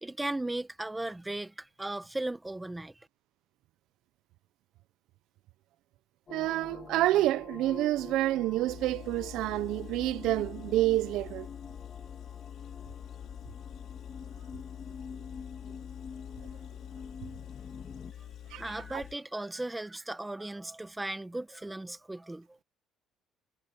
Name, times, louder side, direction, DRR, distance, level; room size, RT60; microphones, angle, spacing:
voice 1, 0.0-3.1 18.5-22.6, right 2 dB, 5° right, 1.0 m, -37 dB
sound 1, 6.3-18.1, left 5 dB, 25° left, 2.2 m, -46 dB
voice 2, 6.3-11.5 18.5-18.6 18.9-19.0, right 15 dB, 70° right, 0.5 m, -28 dB
Engine, 8.7-19.2, left 10 dB, 50° left, 4.0 m, -46 dB
cardioid pair, 170°, 0 cm